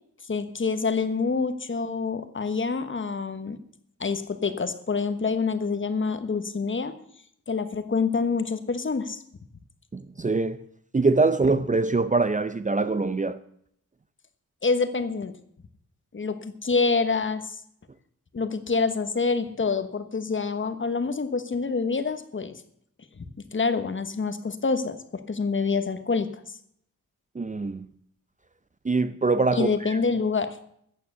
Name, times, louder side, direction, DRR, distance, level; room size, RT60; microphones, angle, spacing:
voice 1, 0.3-3.6 4.0-7.0 7.5-9.2 14.6-15.3 16.1-17.6 18.3-22.5 23.2-23.3 23.5-26.3 29.5-30.6, left 4 dB, 35° left, 1.2 m, -26 dB
voice 2, 9.9-10.6 10.9-13.4 27.3-27.9 28.8-29.7, right 3 dB, 25° right, 0.6 m, -23 dB
14.0 x 8.9 x 6.7 m
wide cardioid pair, 125°, 34 cm